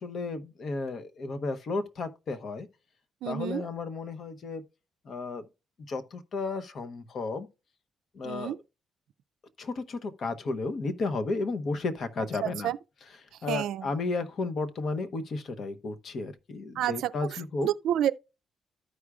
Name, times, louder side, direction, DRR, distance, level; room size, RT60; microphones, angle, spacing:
voice 1, 0.0-2.7 3.2-4.6 5.0-5.4 5.9-7.5 8.1-8.5 9.6-12.7 13.4-17.7, left 3 dB, 55° left, 1.0 m, -33 dB
voice 2, 3.2-3.6 8.2-8.6 12.4-12.8 13.5-13.9 16.8-18.1, right 11 dB, 80° right, 0.3 m, -30 dB
14.0 x 4.8 x 2.3 m
cardioid pair, 90°, 0 cm